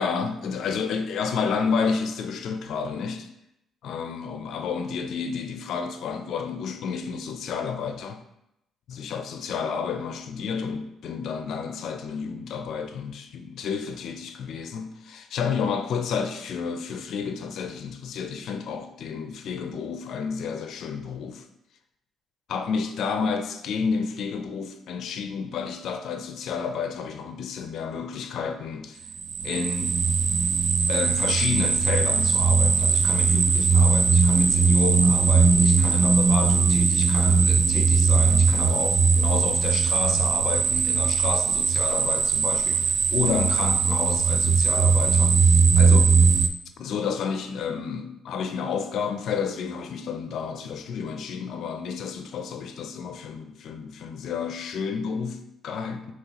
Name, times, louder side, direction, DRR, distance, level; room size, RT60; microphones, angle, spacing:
voice 1, 0.0-3.3 3.8-8.2 8.9-21.5 22.5-29.0 29.4-30.0 30.9-46.2 46.8-56.1, left 6 dB, 70° left, 0.5 m, -31 dB
sound 1, 29.1-46.5, right 5 dB, 55° right, 0.4 m, -20 dB
5.6 x 3.0 x 2.9 m
cardioid pair, 95°, 0 cm